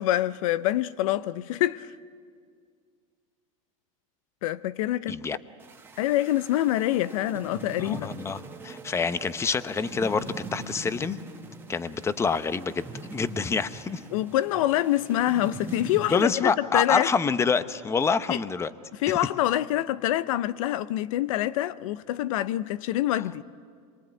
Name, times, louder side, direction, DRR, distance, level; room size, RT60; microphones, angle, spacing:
voice 1, 0.0-1.9 4.4-5.2 6.0-8.1 14.1-17.1 18.3-18.4 19.0-23.4, left 14 dB, 75° left, 0.7 m, -26 dB
sound 1, 5.6-16.3, right 3 dB, 10° right, 1.6 m, -42 dB
voice 2, 7.8-11.2 11.7-14.0 16.1-18.7, left 5 dB, 15° left, 0.8 m, -27 dB
25.5 x 23.0 x 9.2 m
supercardioid pair, 125°, 17 cm